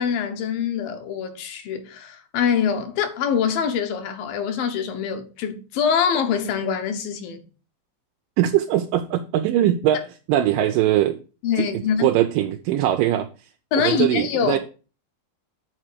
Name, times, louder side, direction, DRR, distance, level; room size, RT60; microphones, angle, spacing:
voice 1, 0.0-7.4 11.4-12.1 13.7-14.6, left 7 dB, 75° left, 2.8 m, -24 dB
voice 2, 8.4-11.2 11.6-11.7 12.0-13.3 13.8-14.6, right 12 dB, 80° right, 2.1 m, -21 dB
8.2 x 4.3 x 6.5 m
omnidirectional pair, 4.2 m